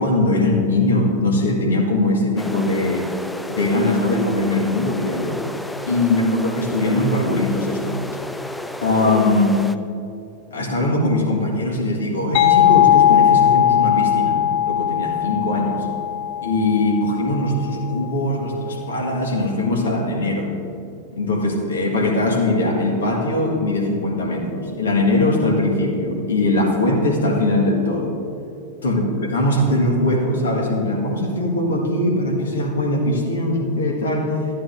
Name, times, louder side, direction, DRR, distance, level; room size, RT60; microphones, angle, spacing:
voice 1, 0.0-3.1 3.5-5.4 5.9-8.0 8.8-9.6 10.5-14.4 14.7-15.9 16.4-20.5 21.1-28.1 28.8-34.4, left 1 dB, 65° left, 0 dB, 1.7 m, -21 dB
sound 1, 2.4-9.8, left 1 dB, 5° left, 0.3 m, -32 dB
sound 2, 12.3-17.8, left 11 dB, 45° left, 0.8 m, -18 dB
14.5 x 9.3 x 2.6 m, 2.7 s
figure-of-eight pair, 90°, 0 cm